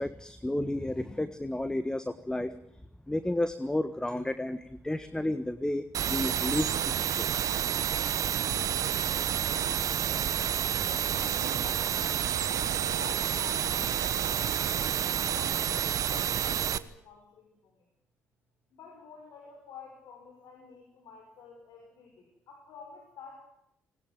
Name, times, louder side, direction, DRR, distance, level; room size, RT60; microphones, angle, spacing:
voice 1, 0.0-2.5 3.1-7.2, left 1 dB, 10° left, 12 dB, 1.4 m, -32 dB
sound 1, 5.9-16.8, right 9 dB, 60° right, 1.1 m, -29 dB
voice 2, 11.1-12.5 12.9-17.8 18.7-23.4, left 5 dB, 70° left, 1 dB, 6.1 m, -50 dB
19.5 x 19.5 x 9.3 m, 0.75 s
hypercardioid pair, 50°, 7 cm